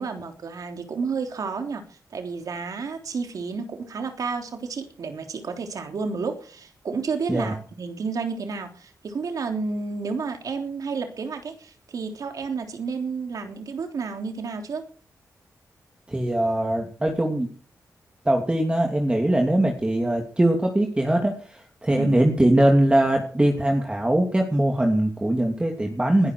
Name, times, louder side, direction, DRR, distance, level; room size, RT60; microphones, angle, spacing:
voice 1, 0.0-1.8 2.1-14.9 22.0-22.1, right 5 dB, 75° right, 5 dB, 3.4 m, -31 dB
voice 2, 16.1-17.5 18.2-26.3, right 1 dB, 15° right, 2 dB, 2.8 m, -21 dB
21.0 x 12.0 x 4.7 m, 0.43 s
cardioid pair, 70°, 6 cm